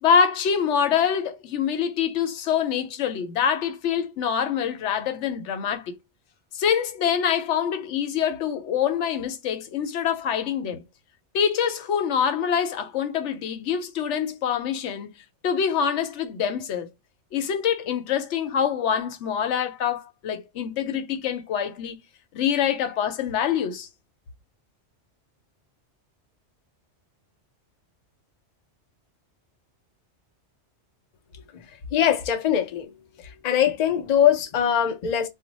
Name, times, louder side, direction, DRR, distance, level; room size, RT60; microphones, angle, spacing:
voice 1, 0.0-6.0 6.5-10.8 11.3-15.1 15.4-16.9 17.3-21.9 22.3-23.9, left 7 dB, 80° left, 0.9 m, -25 dB
voice 2, 31.9-32.9 33.2-35.3, left 9 dB, 50° left, 0.5 m, -22 dB
2.5 x 2.1 x 3.9 m
omnidirectional pair, 1.2 m